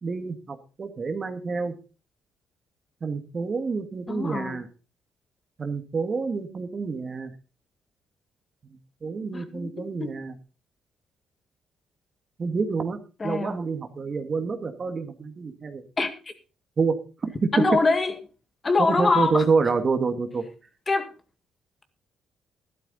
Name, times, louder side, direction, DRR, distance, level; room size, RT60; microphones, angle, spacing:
voice 1, 0.0-1.7 3.0-4.7 5.6-7.3 9.0-10.3 12.4-15.8 16.8-17.0 17.2-17.5 18.8-20.4, right 4 dB, 40° right, 1.8 m, -28 dB
voice 2, 4.1-4.6 9.3-10.1 13.2-13.6 16.0-16.1 17.5-18.1 18.6-19.4 20.9-21.1, left 3 dB, 30° left, 2.1 m, -24 dB
12.5 x 12.0 x 4.1 m
cardioid pair, 90°, 0 cm